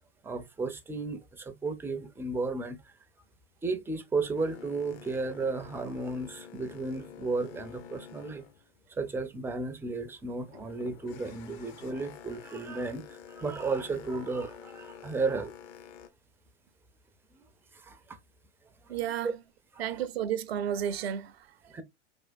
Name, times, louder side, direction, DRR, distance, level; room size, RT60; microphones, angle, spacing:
voice 1, 0.2-2.9 3.6-8.4 9.0-15.5 17.3-17.4 17.7-18.2 19.2-19.3 19.7-19.8 21.7-21.8, right 3 dB, 5° right, 0.5 m, -34 dB
Boat Water vehicle, 4.3-9.4 9.8-16.1, left 8 dB, 35° left, 0.7 m, -49 dB
voice 2, 18.9-19.4 19.8-21.7, right 9 dB, 60° right, 0.6 m, -32 dB
4.8 x 3.5 x 2.6 m
figure-of-eight pair, 100°, 36 cm